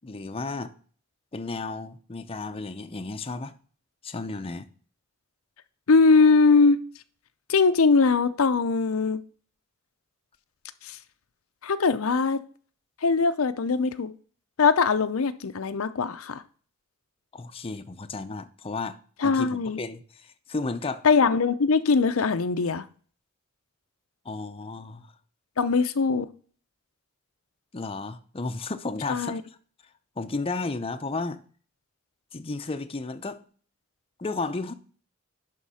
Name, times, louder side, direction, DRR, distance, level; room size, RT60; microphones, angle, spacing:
voice 1, 0.0-0.7 1.3-3.5 4.0-4.7 17.3-19.0 19.2-21.0 24.2-25.1 27.7-29.4 30.2-31.4 32.3-33.4 34.2-34.7, left 3 dB, 25° left, 0.6 m, -33 dB
voice 2, 5.9-6.8 7.5-9.2 10.8-11.0 11.6-12.4 13.0-14.1 14.6-16.4 19.2-19.8 21.0-22.9 25.6-26.3 29.1-29.4, left 4 dB, 80° left, 0.6 m, -21 dB
11.0 x 3.8 x 5.6 m
head